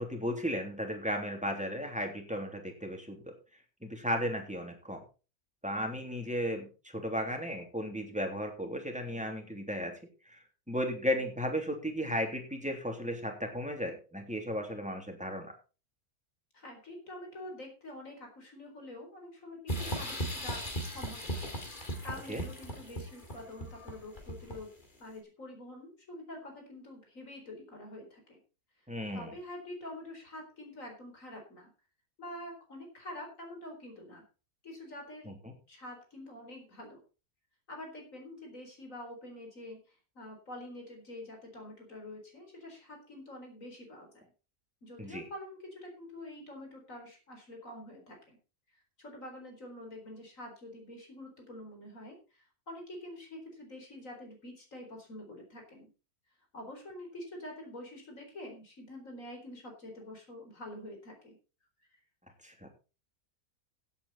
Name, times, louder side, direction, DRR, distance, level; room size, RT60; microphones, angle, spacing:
voice 1, 0.0-3.3 3.8-5.0 5.6-9.9 10.3-15.5 22.3-22.4 28.9-29.3 35.2-35.5 45.0-45.2 62.4-62.7, equal, 5° right, 3 dB, 3.1 m, -35 dB
voice 2, 16.5-20.6 20.9-21.4 22.0-24.7 25.0-28.4 29.1-31.7 32.2-34.2 34.6-35.3 35.7-37.0 37.7-44.1 44.8-48.4 49.0-55.9 56.5-61.4, left 1 dB, 60° left, 2 dB, 4.6 m, -46 dB
sound 1, 19.7-24.8, right 1 dB, 30° left, 3.0 m, -37 dB
15.5 x 8.6 x 4.2 m, 0.33 s
omnidirectional pair, 1.6 m